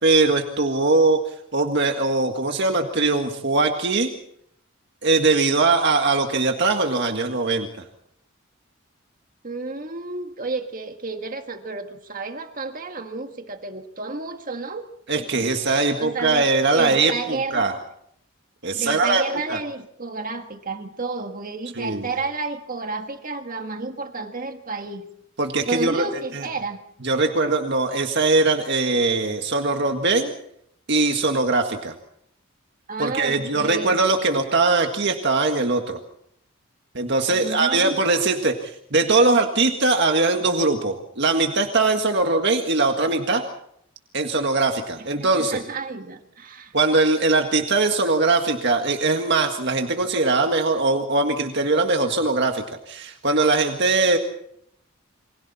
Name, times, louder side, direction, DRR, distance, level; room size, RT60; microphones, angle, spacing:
voice 1, 0.0-1.2 1.5-4.1 5.0-7.7 15.1-17.7 18.6-19.6 21.7-22.1 25.4-26.1 26.3-26.5 27.0-30.3 30.9-31.9 33.0-36.0 36.9-43.4 44.1-45.6 46.7-54.2, right 3 dB, 55° right, 4 dB, 1.8 m, -21 dB
voice 2, 9.4-14.8 15.2-16.4 16.7-17.7 18.7-25.0 25.7-26.8 32.9-34.0 37.3-37.9 45.0-46.7, right 3 dB, 40° right, 5 dB, 1.7 m, -31 dB
28.5 x 24.5 x 4.3 m, 0.71 s
head